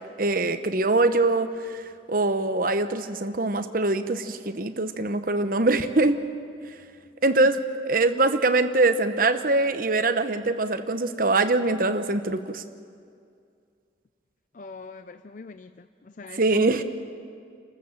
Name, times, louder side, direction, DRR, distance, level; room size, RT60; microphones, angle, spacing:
voice 1, 0.2-1.8 2.1-6.2 7.2-7.6 7.8-12.6 16.3-16.8, right 2 dB, 50° right, 9 dB, 1.0 m, -23 dB
voice 2, 14.5-16.8, left 4 dB, 45° left, 10 dB, 0.5 m, -41 dB
29.0 x 14.0 x 7.5 m, 2.3 s
head